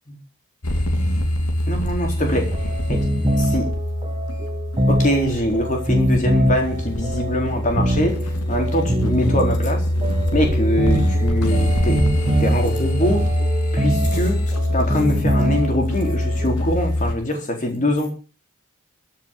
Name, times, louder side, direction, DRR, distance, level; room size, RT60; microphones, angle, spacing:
sound 1, 0.6-17.1, left 1 dB, 90° left, 2.7 m, -23 dB
voice 1, 1.7-2.5 2.9-3.1 3.4-3.7 4.9-8.2 8.5-9.8 10.3-12.0 12.4-13.3 13.7-14.4 14.7-18.1, left 1 dB, 35° left, 3 dB, 3.9 m, -23 dB
sound 2, 2.2-16.5, equal, 25° right, 1.6 m, -24 dB
14.0 x 7.1 x 8.5 m, 0.36 s
head